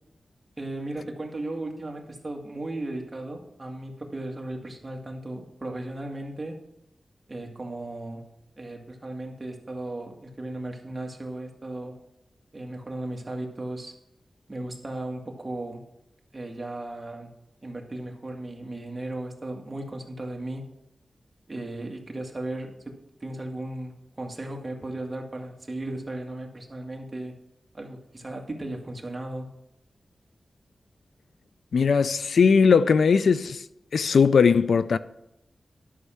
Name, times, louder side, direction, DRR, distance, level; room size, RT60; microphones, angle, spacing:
voice 1, 0.6-6.6 7.3-8.3 8.6-11.9 12.5-14.0 14.5-15.8 16.3-17.3 17.6-20.7 21.5-23.0 23.2-27.3 27.7-29.5, right 1 dB, 30° right, 1.9 m, -36 dB
voice 2, 31.7-33.6 33.9-35.0, left 5 dB, 85° left, 0.4 m, -19 dB
11.5 x 6.3 x 5.8 m
wide cardioid pair, 90°, 0 cm